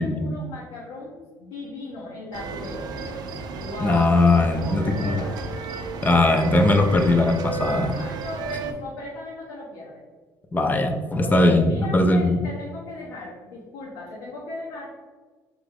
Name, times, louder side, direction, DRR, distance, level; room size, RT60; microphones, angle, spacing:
voice 1, 0.0-5.4 7.7-10.0 11.2-14.9, left 2 dB, 85° left, -5 dB, 1.0 m, -37 dB
sound 1, 2.3-8.7, right 4 dB, 60° right, 0.5 m, -33 dB
voice 2, 3.8-5.2 6.0-7.9 10.5-12.4, left 2 dB, 20° left, 6 dB, 0.6 m, -20 dB
3.7 x 3.4 x 3.5 m, 1.4 s
supercardioid pair, 85°, 8 cm